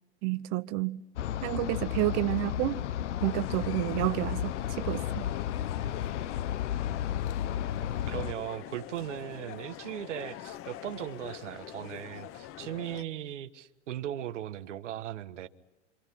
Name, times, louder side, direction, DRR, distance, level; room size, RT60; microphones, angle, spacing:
voice 1, 0.2-1.0 1.4-2.8 3.2-5.3, right 19 dB, 45° right, 0.9 m, -30 dB
sound 1, 1.2-8.3, left 10 dB, 80° left, 1.0 m, -33 dB
sound 2, 3.2-13.0, left 12 dB, 35° left, 1.0 m, -44 dB
voice 2, 8.1-15.5, right 12 dB, 80° right, 1.5 m, -38 dB
27.5 x 27.0 x 5.9 m
hypercardioid pair, 110°, 36 cm